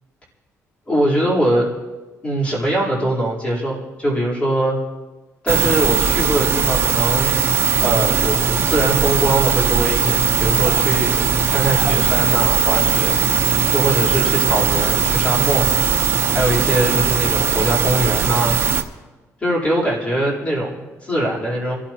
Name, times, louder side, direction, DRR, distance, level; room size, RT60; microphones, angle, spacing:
voice 1, 0.9-1.7 2.2-4.8 5.4-7.4 7.8-13.1 13.7-15.7 16.3-18.5 19.4-21.8, right 1 dB, 20° left, -5 dB, 3.9 m, -22 dB
sound 1, 5.5-18.8, right 6 dB, 45° right, 0.9 m, -19 dB
27.0 x 13.5 x 3.0 m, 1.2 s
cardioid pair, 155°, 6 cm